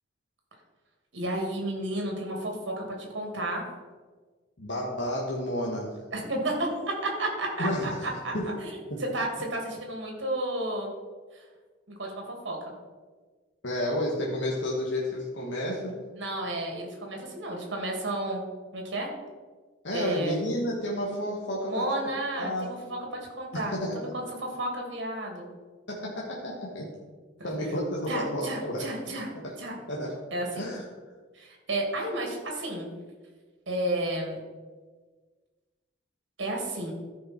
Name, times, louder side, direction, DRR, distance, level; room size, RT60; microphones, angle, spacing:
voice 1, 1.1-3.7 6.1-8.3 8.6-8.8 9.1-10.9 11.3-11.4 11.9-12.6 16.1-18.4 18.7-19.1 19.9-20.4 21.7-23.0 23.4-25.5 27.4-27.5 28.1-29.3 29.6-29.7 30.3-30.6 31.3-32.9 33.7-34.4 36.4-36.9, right 1 dB, 65° right, 1 dB, 2.5 m, -32 dB
voice 2, 4.6-6.0 7.6-8.0 8.3-8.4 8.9-9.0 13.6-16.0 19.8-21.9 22.3-22.7 23.5-24.0 25.9-26.9 27.4-28.9 29.4-29.5 29.9-30.1 30.6-30.8, left 1 dB, 65° left, -3 dB, 1.6 m, -31 dB
13.5 x 5.5 x 4.4 m, 1.4 s
head